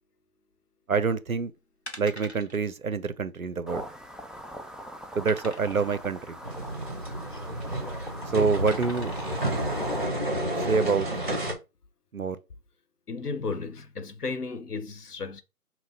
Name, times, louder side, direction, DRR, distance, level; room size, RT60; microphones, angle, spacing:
voice 1, 0.9-1.5 2.0-3.8 5.2-6.4 8.3-9.1 10.7-11.1 12.1-12.4, right 5 dB, 65° right, 0.5 m, -26 dB
sound 1, 1.9-2.6 2.9-3.1 3.3-3.4 4.0-4.5 5.3-6.0 7.3-7.7 8.7-9.4 10.0-10.1, equal, 45° left, 0.6 m, -44 dB
sound 2, 3.7-10.1, equal, ahead, 0.3 m, -40 dB
sound 3, 6.4-11.5, right 1 dB, 40° right, 0.9 m, -31 dB
voice 2, 13.1-15.4, left 4 dB, 80° left, 0.9 m, -34 dB
5.8 x 2.1 x 2.7 m
figure-of-eight pair, 180°, 46 cm